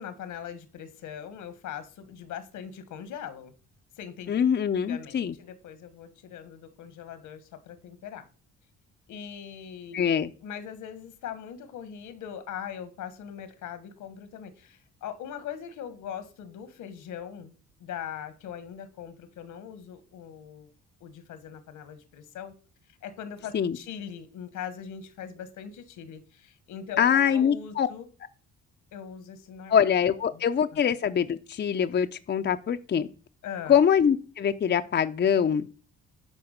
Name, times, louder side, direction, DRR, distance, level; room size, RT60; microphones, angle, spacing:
voice 1, 0.0-3.5 4.0-4.3 4.9-8.3 9.1-10.1 10.4-17.5 17.8-20.7 21.0-22.5 23.0-28.1 28.9-29.8 30.3-30.4 33.4-33.8, left 8 dB, 80° left, 1.5 m, -41 dB
voice 2, 4.3-5.3 9.9-10.3 23.5-23.8 27.0-27.9 29.7-33.1 33.7-35.7, left 8 dB, 35° left, 0.6 m, -24 dB
10.5 x 4.6 x 6.5 m
cardioid pair, 90°, 30 cm